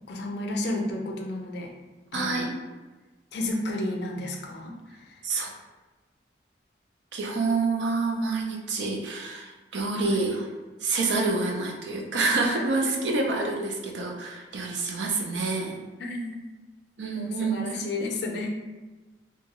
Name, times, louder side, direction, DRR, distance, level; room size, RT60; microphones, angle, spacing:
voice 1, 0.1-1.7 2.1-2.5 3.3-5.3 9.9-10.2 12.5-13.2 16.0-16.4 17.1-18.5, left 2 dB, 65° left, 1 dB, 0.5 m, -32 dB
voice 2, 2.1-2.5 5.2-5.5 7.1-10.5 10.8-15.8 17.0-17.8, right 3 dB, 75° right, 1 dB, 0.5 m, -27 dB
2.7 x 2.2 x 2.9 m, 1.2 s
head